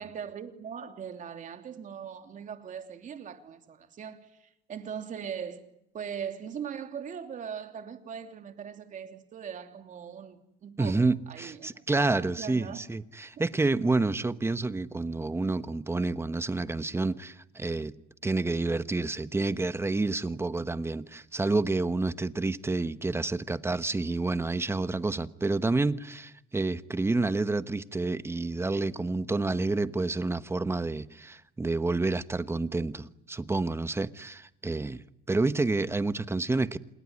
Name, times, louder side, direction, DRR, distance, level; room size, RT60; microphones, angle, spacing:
voice 1, 0.0-5.6 5.9-11.8 12.2-12.8, right 7 dB, 50° right, 3.1 m, -40 dB
voice 2, 10.8-17.9 18.2-36.8, right 3 dB, 15° right, 1.1 m, -29 dB
27.5 x 21.5 x 9.6 m
cardioid pair, 110°, 17 cm